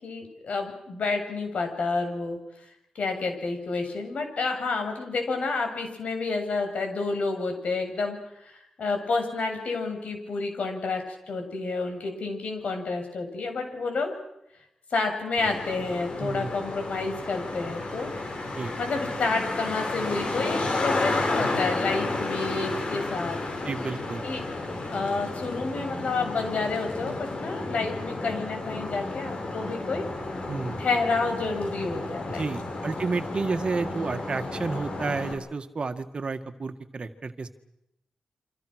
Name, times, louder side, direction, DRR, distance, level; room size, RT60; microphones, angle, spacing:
voice 1, 0.0-2.4 2.9-14.1 14.9-18.1 18.8-23.4 24.2-24.4 24.9-30.0 30.8-32.5, left 3 dB, 65° left, 4 dB, 7.6 m, -29 dB
Traffic noise roadway noise, 15.4-35.3, left 2 dB, 50° left, 7.0 m, -32 dB
voice 2, 16.2-16.5 18.6-18.7 23.6-24.2 30.5-30.8 32.3-37.5, right 4 dB, 45° right, 8 dB, 2.0 m, -31 dB
29.0 x 26.0 x 6.5 m, 0.85 s
cardioid pair, 85°, 2 cm